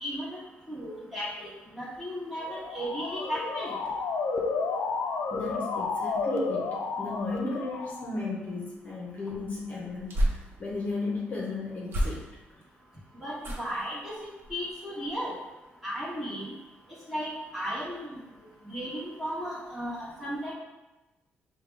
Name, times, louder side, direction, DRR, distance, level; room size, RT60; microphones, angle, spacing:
voice 1, 0.0-0.4 0.7-1.5 1.8-3.7 13.2-14.1 14.5-15.3 15.8-16.4 17.1-18.2 18.6-20.5, equal, 5° right, -8 dB, 1.4 m, -35 dB
Motor vehicle (road) / Siren, 2.4-8.3, left 4 dB, 75° left, 0.4 m, -31 dB
voice 2, 5.3-12.2, left 3 dB, 40° left, -4 dB, 0.8 m, -35 dB
sound 1, 9.3-10.9 11.8-12.6 13.4-13.9 14.4-14.7 15.0-15.1, equal, 60° right, 0.8 m, -32 dB
5.6 x 2.2 x 3.3 m, 1.1 s
cardioid pair, 130°, 4 cm